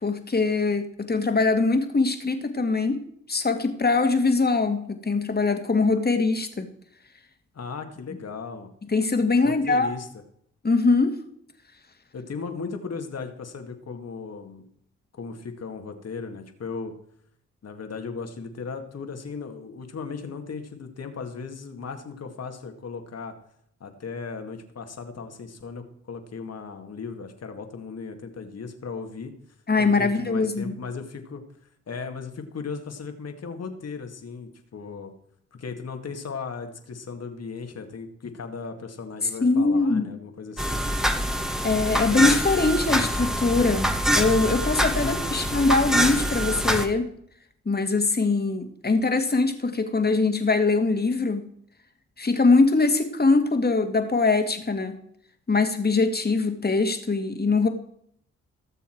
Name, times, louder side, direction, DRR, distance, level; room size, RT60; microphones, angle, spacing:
voice 1, 0.0-3.0 3.3-6.7 8.9-9.9 10.6-11.2 29.7-30.7 39.4-40.1 41.6-43.9 44.2-47.1 47.7-51.5 52.2-55.0 55.5-57.7, left 3 dB, 30° left, 6 dB, 2.1 m, -22 dB
voice 2, 7.5-8.7 9.4-10.1 12.1-14.6 15.2-16.9 17.6-23.3 23.8-29.3 29.8-31.4 31.9-35.1 35.5-40.8 45.0-45.5, left 5 dB, 55° left, 6 dB, 2.1 m, -36 dB
sound 1, 40.6-46.9, equal, ahead, 1.7 m, -25 dB
18.0 x 7.0 x 4.7 m, 0.68 s
supercardioid pair, 45°, 30 cm